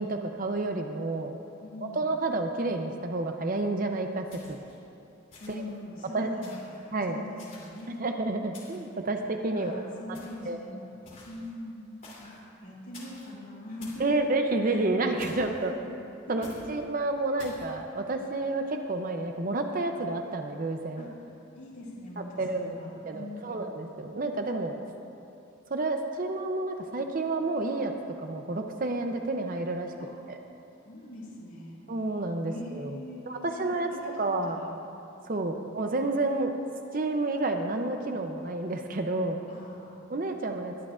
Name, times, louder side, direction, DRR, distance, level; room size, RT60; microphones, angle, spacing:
voice 1, 0.0-1.4 1.9-4.6 6.1-6.3 6.9-7.2 8.0-9.8 10.1-10.2 10.5-10.6 14.0-15.7 16.3-21.1 22.2-22.8 23.1-24.8 25.7-27.9 28.2-29.9 30.3-30.4 31.9-33.0 33.3-34.6 35.3-36.5 36.9-39.4 40.1-40.9, right 2 dB, 40° right, 4 dB, 0.6 m, -30 dB
voice 2, 1.6-2.0 5.4-8.0 9.5-10.9 11.2-11.9 12.2-14.3 14.6-14.8 15.3-15.9 16.3-16.8 20.9-21.1 21.5-23.6 30.0-30.1 30.8-31.8 32.5-34.7 39.5-40.0, left 1 dB, 80° left, -9 dB, 2.6 m, -42 dB
sound 1, 4.3-4.8 5.3-5.8 6.4-6.8 7.4-8.0 8.5-9.0 10.1-10.5 11.1-11.5 12.0-12.4 12.9-13.3 13.8-14.1 15.2-15.6 16.4-16.7 17.4-17.7, left 2 dB, 40° left, 3.0 m, -49 dB
22.0 x 11.0 x 2.5 m, 2.7 s
head